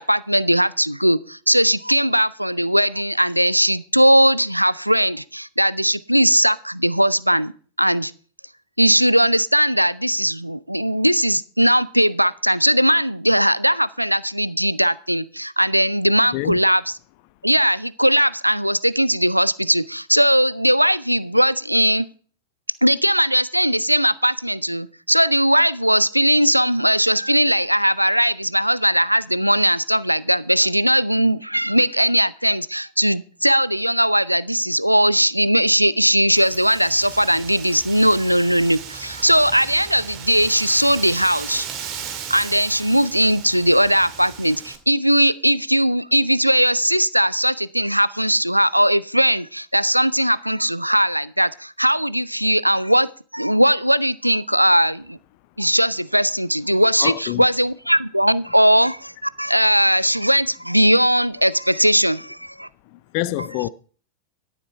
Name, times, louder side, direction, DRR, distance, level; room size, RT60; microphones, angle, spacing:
voice 1, 0.0-7.5 7.8-8.1 8.8-16.9 17.4-22.1 22.8-41.7 42.3-55.2 55.6-62.7, equal, 90° right, 0.4 m, -19 dB
Wind, 36.4-44.8, right 7 dB, 35° right, 2.1 m, -36 dB
voice 2, 57.0-57.5 62.9-63.7, left 16 dB, 45° left, 0.5 m, -26 dB
13.0 x 7.3 x 4.6 m
figure-of-eight pair, 90°, 0 cm